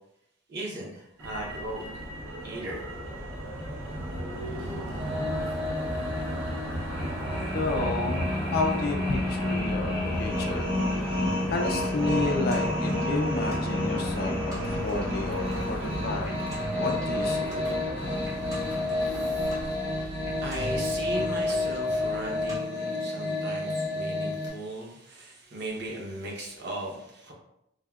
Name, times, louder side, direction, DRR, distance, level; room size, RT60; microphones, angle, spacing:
voice 1, 0.5-1.8 2.4-2.8 18.0-27.3, right 1 dB, 50° right, -2 dB, 0.7 m, -38 dB
Motor vehicle (road), 1.2-19.7, equal, 85° right, 0.7 m, -35 dB
sound 1, 5.0-24.5, left 2 dB, 65° right, 1.5 m, -30 dB
voice 2, 7.5-16.4 16.8-17.5, left 2 dB, 45° left, 2 dB, 0.4 m, -31 dB
sound 2, 11.6-22.6, equal, 15° right, 0.5 m, -39 dB
3.3 x 2.1 x 2.3 m, 0.80 s
head